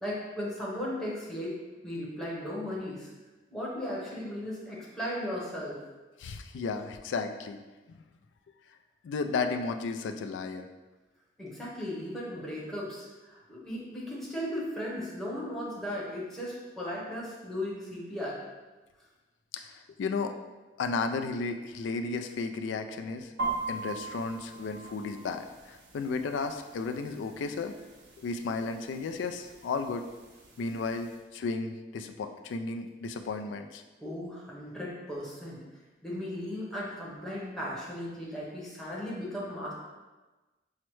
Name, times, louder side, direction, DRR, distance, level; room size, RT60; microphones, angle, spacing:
voice 1, 0.0-1.6 1.8-3.1 3.5-5.8 11.4-18.4 34.0-35.7 36.0-39.7, left 1 dB, ahead, -7 dB, 0.9 m, -36 dB
voice 2, 6.2-7.6 9.0-10.7 19.5-20.3 20.8-23.3 23.7-27.7 28.2-30.0 30.6-33.8, left 4 dB, 85° left, 6 dB, 0.3 m, -33 dB
sound 1, 23.4-31.2, right 3 dB, 70° right, 0.7 m, -41 dB
5.6 x 2.1 x 3.1 m, 1.2 s
head